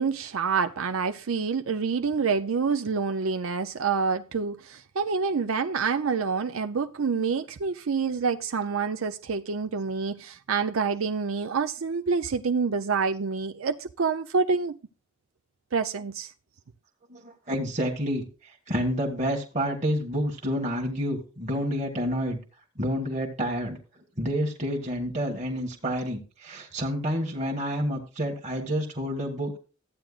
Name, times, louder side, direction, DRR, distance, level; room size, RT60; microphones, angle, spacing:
voice 1, 0.0-14.8 15.7-16.3, right 5 dB, 90° right, 0.6 m, -27 dB
voice 2, 17.1-22.4 22.7-23.8 24.2-29.6, equal, 35° right, 1.5 m, -29 dB
14.0 x 9.0 x 2.4 m
head